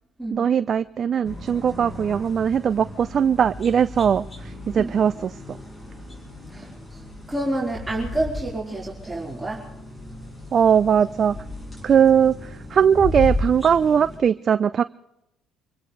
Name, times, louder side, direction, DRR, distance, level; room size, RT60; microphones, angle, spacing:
voice 1, 0.3-5.4 10.5-11.4 11.8-14.8, right 8 dB, 45° right, 14 dB, 0.5 m, -20 dB
sound 1, 1.2-14.2, left 2 dB, 20° left, 5.4 m, -35 dB
voice 2, 6.5-7.0 7.3-9.6, right 1 dB, 10° right, -4 dB, 4.4 m, -29 dB
26.5 x 16.5 x 3.3 m, 0.84 s
supercardioid pair, 80°, 0 cm